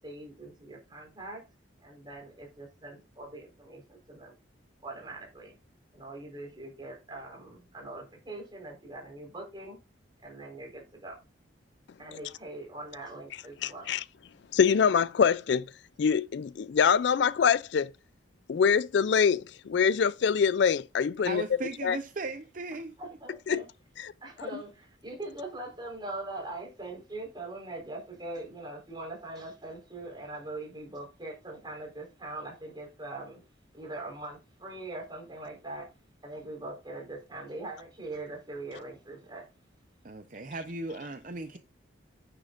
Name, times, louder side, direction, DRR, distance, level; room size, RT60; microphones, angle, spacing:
voice 1, 0.0-1.4 1.8-4.3 4.8-5.6 5.9-9.8 10.2-11.2 12.0-13.9 23.0-23.6 24.2-33.4 33.7-35.9 36.2-39.4, right 2 dB, 20° right, 4.2 m, -42 dB
voice 2, 13.6-14.0 14.5-15.6 16.0-17.9 18.5-21.4 21.8-22.0 23.5-23.6 24.0-24.1, left 6 dB, 60° left, 0.3 m, -24 dB
voice 3, 21.2-22.9 40.0-41.6, right 3 dB, 40° right, 0.7 m, -37 dB
9.8 x 9.2 x 2.5 m
head